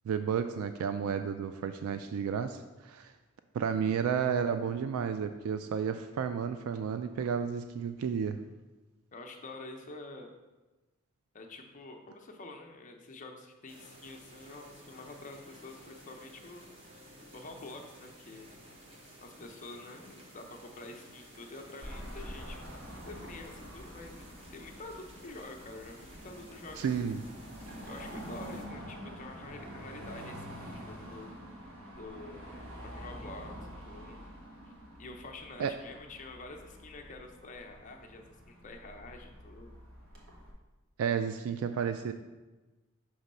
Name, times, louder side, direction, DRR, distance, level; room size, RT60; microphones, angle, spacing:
voice 1, 0.1-3.1 3.5-8.4 26.8-27.2 35.6-35.7 41.0-42.1, right 7 dB, 85° right, 9 dB, 0.3 m, -32 dB
voice 2, 9.1-10.3 11.3-16.7 17.3-18.5 19.2-27.2 27.9-31.3 32.0-32.5 32.8-34.2 34.7-34.8 35.0-39.8, left 2 dB, 35° left, 3 dB, 0.6 m, -47 dB
sound 1, 13.7-28.7, equal, 25° right, 1.0 m, -54 dB
Car passing by / Traffic noise roadway noise / Engine, 21.8-40.5, equal, 65° right, 1.3 m, -47 dB
6.2 x 3.0 x 5.3 m, 1.2 s
head